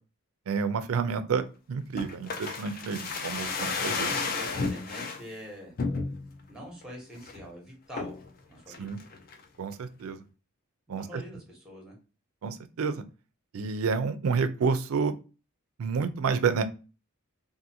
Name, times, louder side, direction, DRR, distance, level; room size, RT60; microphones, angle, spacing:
voice 1, 0.5-1.4 1.7-4.1 8.8-9.0 9.6-10.2 10.9-11.2 12.4-13.0 13.5-15.2 15.8-16.6, right 5 dB, 70° right, 10 dB, 0.4 m, -29 dB
sound 1, 2.0-5.2 5.8-6.4 6.8-6.9 7.2-7.5 8.0-8.3 8.7-9.4 9.7-9.8, left 4 dB, 40° left, 0.4 m, -32 dB
voice 2, 3.8-5.7 6.5-8.1 8.5-8.9 10.9-11.9, equal, 5° right, -1 dB, 1.0 m, -44 dB
2.5 x 2.5 x 2.7 m, 0.33 s
head